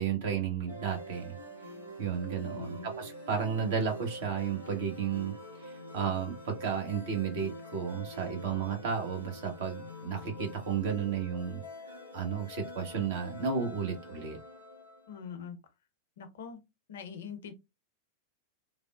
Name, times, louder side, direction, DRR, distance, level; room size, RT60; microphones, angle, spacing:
voice 1, 0.0-1.4 2.0-11.6 12.1-14.4, right 7 dB, 55° right, 1.0 m, -33 dB
sound 1, 0.7-15.2, equal, 85° right, 0.9 m, -45 dB
voice 2, 2.4-2.9 15.1-15.6 16.2-16.6 16.9-17.5, left 7 dB, 60° left, 0.5 m, -43 dB
3.3 x 2.1 x 2.3 m
figure-of-eight pair, 90°, 0 cm